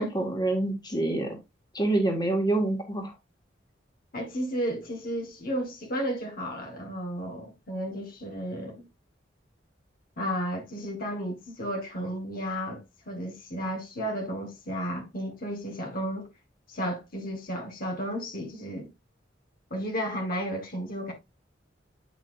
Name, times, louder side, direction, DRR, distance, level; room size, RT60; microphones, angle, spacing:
voice 1, 0.0-1.4 1.7-3.1, right 2 dB, 25° left, 2.0 m, -26 dB
voice 2, 4.1-8.8 10.2-16.3 16.7-18.9 19.7-21.1, equal, 50° left, 1.7 m, -33 dB
8.5 x 5.6 x 2.6 m
head